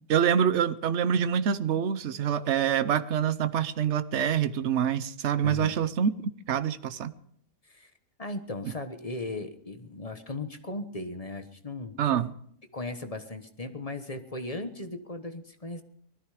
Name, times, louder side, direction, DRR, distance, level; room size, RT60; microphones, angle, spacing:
voice 1, 0.1-6.1 6.5-7.1 12.0-12.3, right 8 dB, 55° right, 14 dB, 1.0 m, -26 dB
voice 2, 5.4-5.8 7.6-7.9 8.2-11.9 12.7-15.8, left 2 dB, 25° left, 7 dB, 1.0 m, -37 dB
19.5 x 13.5 x 4.9 m, 0.63 s
omnidirectional pair, 1.7 m